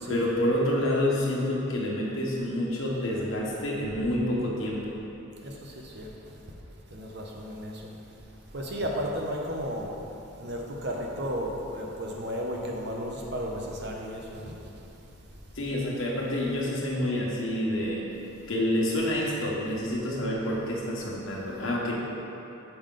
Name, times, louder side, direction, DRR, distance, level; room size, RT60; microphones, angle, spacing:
voice 1, 0.1-5.0 15.5-18.0 18.5-21.9, left 1 dB, 75° left, -4 dB, 1.2 m, -28 dB
voice 2, 5.4-6.1 6.9-7.9 8.5-9.9 10.4-14.5, equal, 55° right, -1 dB, 0.8 m, -34 dB
7.0 x 5.0 x 3.8 m, 2.9 s
head